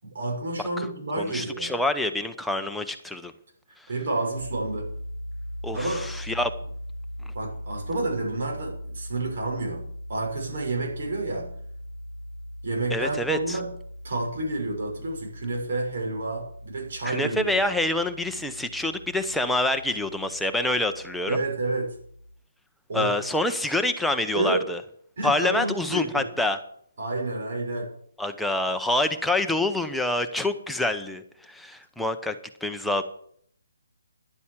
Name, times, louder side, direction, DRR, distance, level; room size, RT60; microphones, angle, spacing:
voice 1, 0.0-1.7 3.9-4.9 5.7-6.0 7.3-9.8 10.1-11.5 12.6-13.7 14.0-17.4 21.3-21.9 22.9-23.1 24.3-24.7 25.2-26.3 27.0-27.9, right 2 dB, 60° right, 0 dB, 6.2 m, -29 dB
voice 2, 1.2-3.3 5.6-6.5 12.9-13.6 17.0-21.4 22.9-24.8 25.2-26.6 28.2-32.4 32.6-33.0, left 1 dB, ahead, 6 dB, 0.8 m, -26 dB
sound 1, 4.4-22.3, equal, 75° right, 4.5 m, -40 dB
11.0 x 8.3 x 7.4 m, 0.64 s
hypercardioid pair, 155°, 0 cm